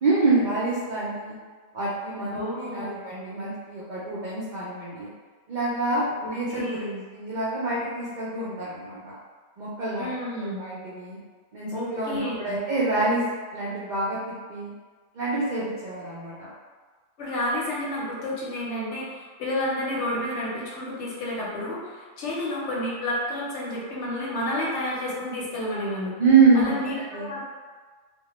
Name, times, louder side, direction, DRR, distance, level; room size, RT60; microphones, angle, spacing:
voice 1, 0.0-1.3 1.7-5.1 5.5-6.0 6.3-6.9 7.1-9.1 9.6-10.1 10.6-11.2 11.5-13.2 13.5-14.2 14.5-14.7 15.1-16.5 26.2-27.3, right 3 dB, 75° right, -8 dB, 0.4 m, -26 dB
voice 2, 2.3-3.0 6.2-7.0 10.0-10.6 11.7-12.5 17.2-26.2 26.5-27.4, left 1 dB, 65° left, -5 dB, 0.8 m, -30 dB
2.2 x 2.1 x 2.9 m, 1.5 s
omnidirectional pair, 1.4 m